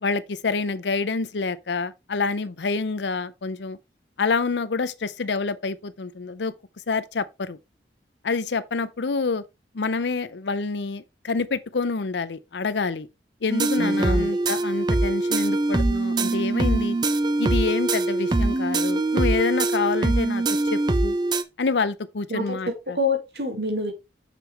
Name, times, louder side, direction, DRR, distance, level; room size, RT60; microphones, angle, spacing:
voice 1, 0.0-3.8 4.2-6.5 6.9-7.6 8.2-9.4 9.7-13.1 13.4-17.0 17.4-20.4 20.7-21.2 21.6-23.0, left 4 dB, 85° left, 0.7 m, -27 dB
sound 1, 13.5-21.4, right 2 dB, 25° right, 0.5 m, -23 dB
voice 2, 13.8-14.4 22.3-23.9, left 1 dB, 65° right, 2.2 m, -27 dB
6.8 x 6.1 x 3.4 m
head